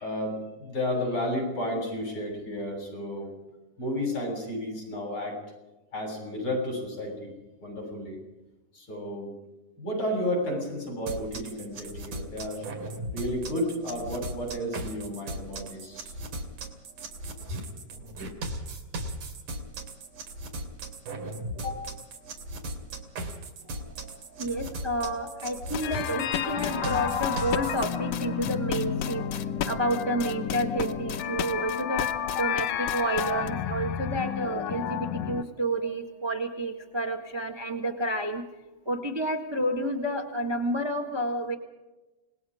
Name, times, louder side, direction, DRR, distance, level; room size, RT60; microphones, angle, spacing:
voice 1, 0.0-3.3 3.8-5.4 5.9-7.3 7.6-8.2 8.7-9.3 9.8-12.6 13.1-16.1 21.5-21.9, left 1 dB, 40° left, 2 dB, 8.4 m, -32 dB
sound 1, 11.1-27.8, right 1 dB, 85° right, 4.2 m, -37 dB
voice 2, 23.8-38.4 38.8-41.5, right 1 dB, 15° right, 4 dB, 0.8 m, -30 dB
sound 2, 25.7-33.5, left 10 dB, 65° left, 1.9 m, -34 dB
sound 3, 25.8-35.4, left 9 dB, 90° left, 2.6 m, -31 dB
28.0 x 20.0 x 5.1 m, 1.1 s
omnidirectional pair, 3.5 m